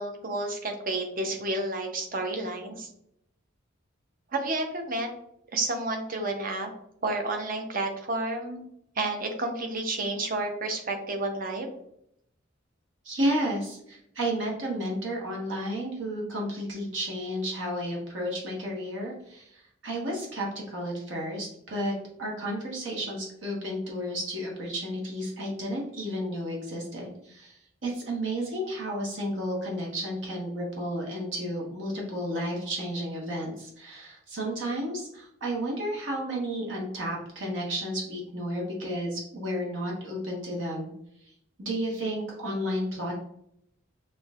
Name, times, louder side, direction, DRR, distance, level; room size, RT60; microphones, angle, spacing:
voice 1, 0.0-2.9 4.3-5.1 5.5-6.7 7.0-8.6 9.0-11.7, right 2 dB, 45° right, 4 dB, 0.7 m, -30 dB
voice 2, 13.0-21.9 22.2-40.9 41.2-41.3 41.6-43.1, equal, 65° right, -2 dB, 1.2 m, -32 dB
6.0 x 2.7 x 2.4 m, 0.74 s
head